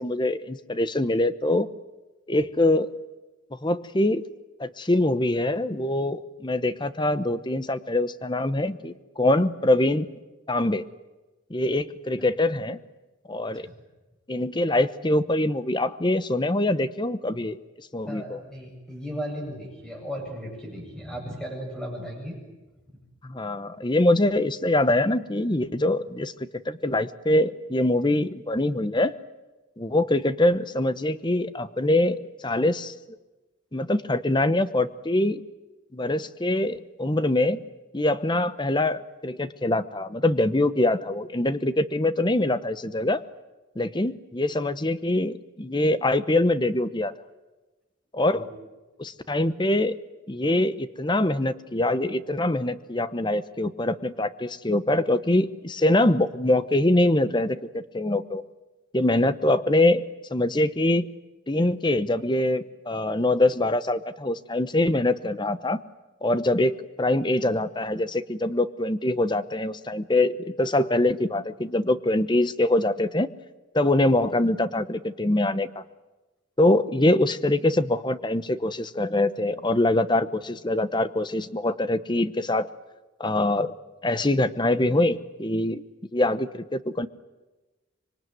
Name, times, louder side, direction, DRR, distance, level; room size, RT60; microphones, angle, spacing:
voice 1, 0.0-1.7 2.3-2.9 3.6-4.2 4.6-10.1 10.5-10.8 11.5-12.8 13.3-13.7 14.3-18.4 23.2-26.3 26.7-29.1 29.8-32.9 33.7-35.4 35.9-37.6 37.9-43.2 43.8-47.1 48.1-48.5 49.0-49.9 50.3-58.4 58.9-60.0 60.3-61.1 61.5-65.8 66.2-73.3 73.7-75.8 76.6-82.7 83.2-83.7 84.0-85.8 86.1-87.1, left 1 dB, 20° left, 14 dB, 0.9 m, -24 dB
voice 2, 18.1-22.4 22.9-23.0 48.3-48.5, equal, 5° left, 1 dB, 7.9 m, -36 dB
25.5 x 23.0 x 9.3 m, 1.1 s
head